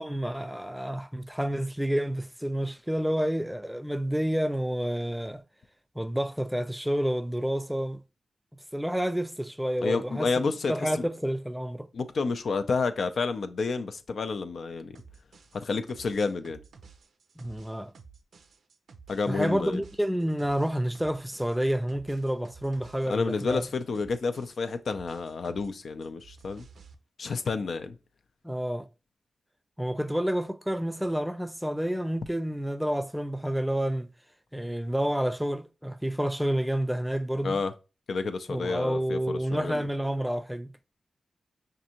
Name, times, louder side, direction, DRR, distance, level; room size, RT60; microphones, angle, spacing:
voice 1, 0.0-5.4 6.0-8.0 8.7-11.9 17.4-17.9 19.3-23.6 28.4-28.9 29.8-34.1 34.5-37.6 38.5-40.7, equal, 5° right, 0.3 m, -29 dB
voice 2, 9.8-10.9 11.9-15.0 15.6-16.6 19.1-19.8 23.1-26.7 27.2-28.0 37.4-37.7 38.1-39.9, left 4 dB, 75° left, 0.4 m, -30 dB
sound 1, 14.9-25.7 26.0-26.9, right 5 dB, 85° right, 0.4 m, -53 dB
5.2 x 2.5 x 2.8 m
cardioid pair, 55°, 0 cm